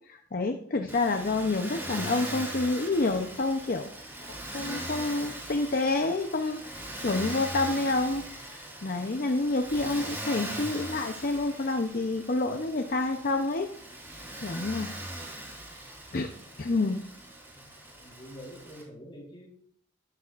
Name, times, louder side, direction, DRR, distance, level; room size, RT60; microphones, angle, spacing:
voice 1, 0.1-3.9 4.5-8.2 8.5-13.7 14.4-14.9 16.1-16.3 16.6-17.0, left 2 dB, 45° left, 5 dB, 0.7 m, -28 dB
Motor vehicle (road), 0.9-18.8, right 1 dB, 10° right, 3.2 m, -40 dB
voice 2, 18.0-19.5, equal, 25° left, -2 dB, 4.1 m, -46 dB
15.0 x 13.0 x 2.5 m, 0.66 s
head